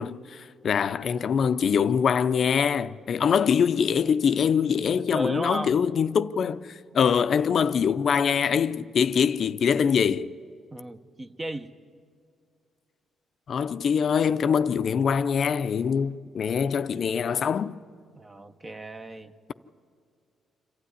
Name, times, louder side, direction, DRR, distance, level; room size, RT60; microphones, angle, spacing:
voice 1, 0.0-10.3 13.5-17.8, left 7 dB, 55° left, 0.5 m, -24 dB
voice 2, 5.1-5.8 6.9-7.1 10.7-11.7 18.2-19.3, right 1 dB, 25° right, 0.8 m, -35 dB
26.5 x 12.5 x 9.7 m
cardioid pair, 90°, 0 cm